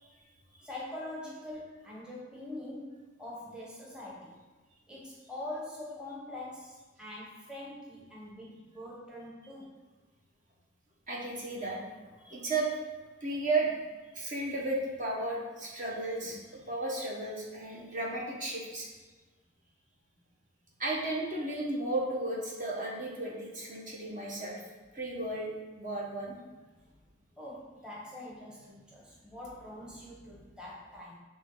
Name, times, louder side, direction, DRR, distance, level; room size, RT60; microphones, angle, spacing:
voice 1, 0.6-4.4 4.9-9.7 26.8-26.9 27.4-31.2, left 1 dB, 5° right, -5 dB, 1.1 m, -44 dB
voice 2, 11.1-11.8 12.2-12.7 13.2-13.7 14.1-18.9 20.8-24.6 24.9-25.5 25.8-26.3, right 2 dB, 40° right, -3 dB, 1.3 m, -34 dB
8.4 x 3.4 x 3.9 m, 1.3 s
head